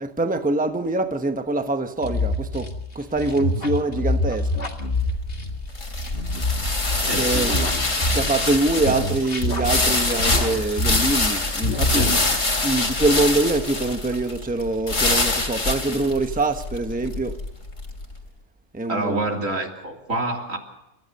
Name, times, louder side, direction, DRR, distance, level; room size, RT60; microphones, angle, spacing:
voice 1, 0.0-2.7 2.9-4.5 7.1-7.6 8.1-12.2 12.6-17.3 18.7-19.2, right 2 dB, 5° right, 1.0 m, -24 dB
sound 1, 2.0-8.6 8.9-11.4 11.6-12.7, left 1 dB, 45° left, 2.4 m, -26 dB
sound 2, 4.8-18.0, left 3 dB, 80° left, 3.4 m, -25 dB
voice 2, 7.1-7.8 11.9-12.1 18.9-20.6, right 2 dB, 85° right, 3.6 m, -27 dB
29.0 x 14.5 x 6.7 m
omnidirectional pair, 1.3 m